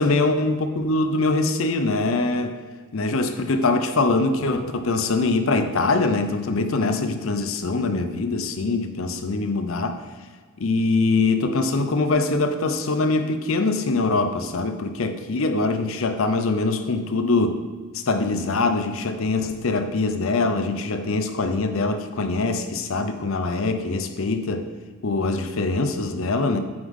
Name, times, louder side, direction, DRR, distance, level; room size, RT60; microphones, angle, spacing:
voice 1, 0.0-2.5 2.9-10.0 10.6-17.6 17.9-24.7 25.0-26.6, left 3 dB, 65° left, 8 dB, 0.6 m, -23 dB
7.9 x 3.6 x 5.4 m, 1.5 s
head